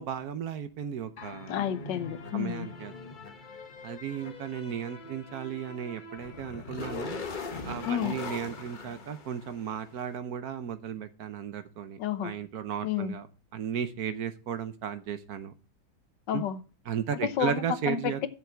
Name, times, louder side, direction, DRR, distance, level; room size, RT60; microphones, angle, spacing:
voice 1, 0.0-1.5 2.3-2.9 3.8-7.3 7.6-13.3 13.5-15.5 16.3-16.4 16.9-18.2, right 8 dB, 65° right, 1.2 m, -35 dB
sound 1, 1.2-9.9, left 4 dB, 35° left, 1.0 m, -41 dB
voice 2, 1.5-2.7 7.9-8.2 12.0-12.3 12.8-13.2 16.3-16.6 17.2-18.3, left 9 dB, 80° left, 1.5 m, -30 dB
7.4 x 5.8 x 7.4 m
omnidirectional pair, 1.9 m